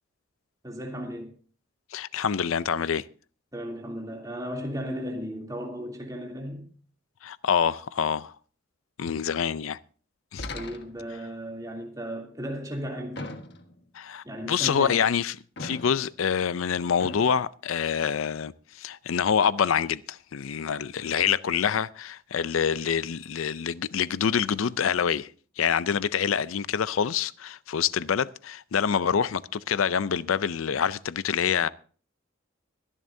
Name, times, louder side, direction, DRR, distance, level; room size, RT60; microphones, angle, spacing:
voice 1, 0.6-1.3 3.5-6.7 10.5-13.3 14.2-15.1, equal, 15° right, 2.9 m, -35 dB
voice 2, 1.9-3.0 7.2-8.3 9.0-9.8 10.3-10.5 13.9-25.3 25.6-31.7, left 7 dB, 75° left, 0.5 m, -26 dB
sound 1, 10.4-11.2 13.2-13.9 15.6-16.2 17.0-17.4, left 2 dB, 55° left, 1.5 m, -39 dB
22.5 x 11.0 x 2.7 m
head